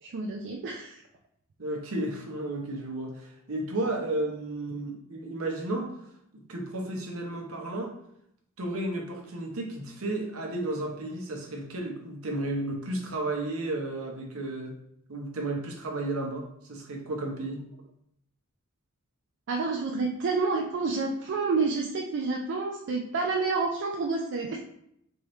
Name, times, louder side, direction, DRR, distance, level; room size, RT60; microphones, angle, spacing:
voice 1, 0.0-1.0 19.5-24.6, right 4 dB, 55° right, 1 dB, 0.4 m, -29 dB
voice 2, 1.6-5.9 6.3-7.9 8.6-14.7 15.1-17.6, right 2 dB, 70° right, 1 dB, 0.8 m, -33 dB
3.5 x 3.0 x 3.1 m, 0.73 s
head